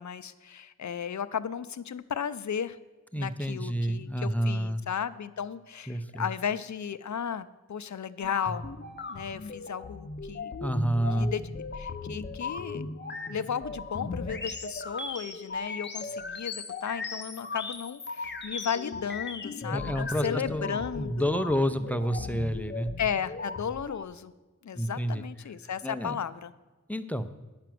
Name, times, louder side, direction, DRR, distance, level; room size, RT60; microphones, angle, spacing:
voice 1, 0.0-2.8 3.2-8.7 9.1-10.5 11.2-11.4 11.7-12.8 13.3-21.4 23.0-24.3 24.6-26.5, left 7 dB, 75° left, 14 dB, 0.5 m, -34 dB
voice 2, 3.1-4.8 5.9-6.3 10.6-11.3 19.7-22.9 24.8-25.2 25.8-26.2 26.9-27.3, equal, 5° left, 11 dB, 0.6 m, -29 dB
sound 1, 8.2-24.0, left 3 dB, 40° left, 0.8 m, -37 dB
10.5 x 5.9 x 7.7 m, 1.2 s
wide cardioid pair, 65°, 29 cm